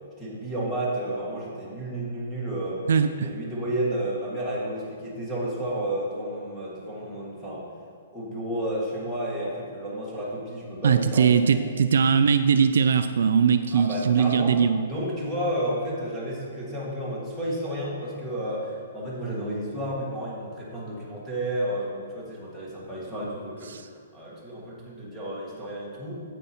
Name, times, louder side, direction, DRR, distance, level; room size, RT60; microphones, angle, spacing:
voice 1, 0.2-2.8 3.2-7.7 8.1-11.6 13.7-14.5 14.8-23.7 24.1-26.1, right 1 dB, 5° left, -7 dB, 1.5 m, -31 dB
voice 2, 2.9-3.3 10.8-14.8 23.7-23.8, right 6 dB, 65° right, 9 dB, 0.4 m, -20 dB
9.1 x 8.2 x 4.4 m, 2.3 s
hypercardioid pair, 180°, 0 cm